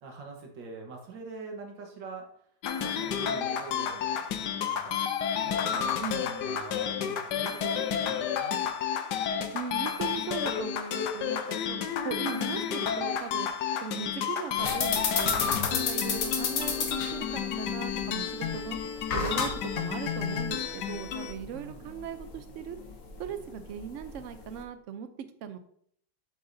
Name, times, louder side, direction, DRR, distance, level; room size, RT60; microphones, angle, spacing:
voice 1, 0.0-2.3 2.8-5.1 5.4-8.7 21.5-21.9, right 4 dB, 90° right, 2 dB, 2.0 m, -44 dB
sound 1, 2.6-21.3, left 8 dB, 70° left, 1.3 m, -31 dB
voice 2, 9.5-13.5 13.8-18.8 19.1-22.8 23.2-25.1 25.4-25.6, right 7 dB, 60° right, 9 dB, 0.8 m, -38 dB
sound 2, 14.6-24.6, left 5 dB, 50° left, 1.2 m, -33 dB
7.9 x 7.7 x 2.7 m, 0.66 s
omnidirectional pair, 1.9 m